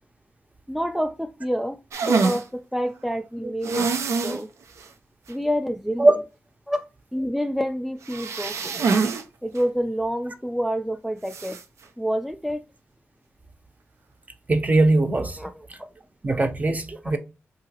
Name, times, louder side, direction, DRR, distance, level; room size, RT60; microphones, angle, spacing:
voice 1, 0.7-3.9 4.2-4.5 5.3-6.3 6.7-6.9 7.1-8.8 9.4-11.6 12.0-12.6 15.4-15.5 17.0-17.1, equal, ahead, 0.3 m, -28 dB
sound 1, 1.9-2.4 3.6-4.4 4.8-4.9 5.3-5.4 8.0-9.2 9.5-9.6 11.3-11.6, right 4 dB, 80° right, 0.4 m, -25 dB
voice 2, 14.5-15.4 16.2-17.2, right 2 dB, 30° right, 0.7 m, -20 dB
3.7 x 2.8 x 2.8 m
cardioid pair, 55°, 5 cm